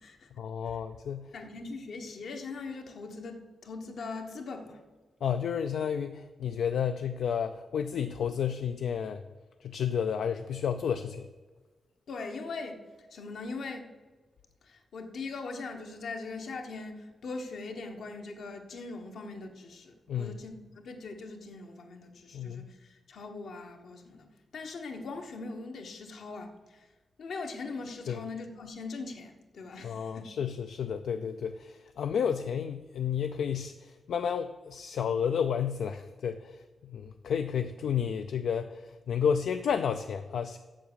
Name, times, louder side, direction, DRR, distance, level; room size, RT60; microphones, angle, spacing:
voice 1, 0.4-1.3 5.2-9.2 9.6-11.3 20.1-20.3 22.3-22.7 28.1-28.2 29.8-40.6, left 7 dB, 90° left, 8 dB, 0.4 m, -31 dB
voice 2, 1.3-4.8 12.1-12.8 13.1-13.9 14.6-20.5 20.8-24.3 24.5-26.9 27.2-30.3, left 3 dB, 70° left, 4 dB, 1.2 m, -41 dB
7.6 x 7.1 x 6.8 m, 1.3 s
wide cardioid pair, 145°, 0 cm